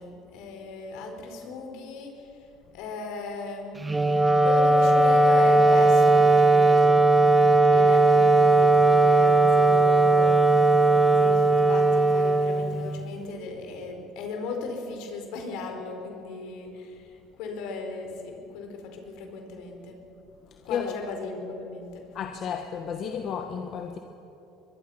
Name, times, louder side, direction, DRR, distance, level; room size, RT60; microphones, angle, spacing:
voice 1, 0.0-2.4 2.7-4.0 4.4-7.0 7.6-10.4 11.1-20.0 20.6-22.1, left 4 dB, 75° left, 3 dB, 4.7 m, -37 dB
Wind instrument woodwind instrument, 3.8-13.1, right 2 dB, 15° right, 1.1 m, -18 dB
voice 2, 22.1-24.0, left 7 dB, 50° left, 5 dB, 1.5 m, -32 dB
23.5 x 22.5 x 5.8 m, 2.8 s
supercardioid pair, 100°, 0 cm